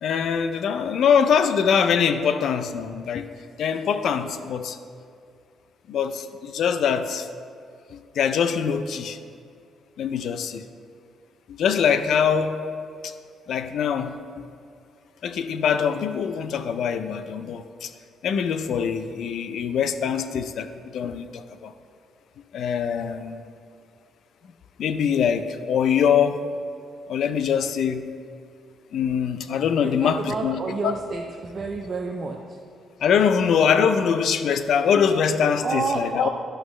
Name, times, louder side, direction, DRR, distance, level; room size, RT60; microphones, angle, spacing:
voice 1, 0.0-3.3 3.6-4.8 5.9-7.3 7.9-9.2 10.0-10.7 11.5-12.6 13.0-13.1 13.5-14.5 15.2-17.9 18.2-21.7 22.5-23.4 24.8-26.4 27.1-28.1 28.9-30.9 33.0-36.3, left 7 dB, 70° left, 10 dB, 0.5 m, -23 dB
voice 2, 29.8-32.6 35.6-36.3, right 4 dB, 45° right, 1 dB, 0.6 m, -29 dB
11.0 x 6.1 x 3.2 m, 2.3 s
cardioid pair, 90°, 0 cm